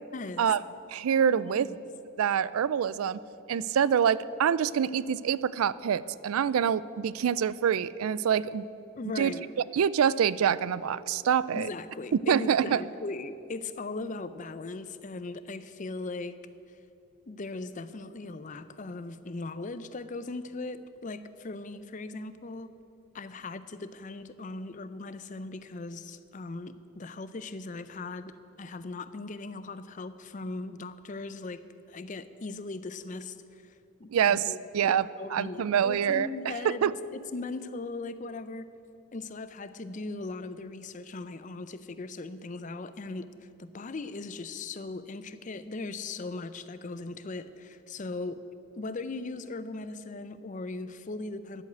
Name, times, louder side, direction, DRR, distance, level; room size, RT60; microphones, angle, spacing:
voice 1, 0.1-0.5 1.3-1.8 9.0-9.5 11.5-16.4 17.3-22.7 23.1-34.6 35.2-38.7 39.1-48.4 48.8-51.6, left 3 dB, 35° left, 13 dB, 0.5 m, -39 dB
voice 2, 0.9-1.7 2.2-3.2 3.5-8.7 9.2-9.4 9.7-11.7 12.3-12.8 34.1-35.1 35.3-36.9, right 8 dB, 85° right, 18 dB, 0.4 m, -26 dB
10.5 x 8.2 x 7.9 m, 2.8 s
head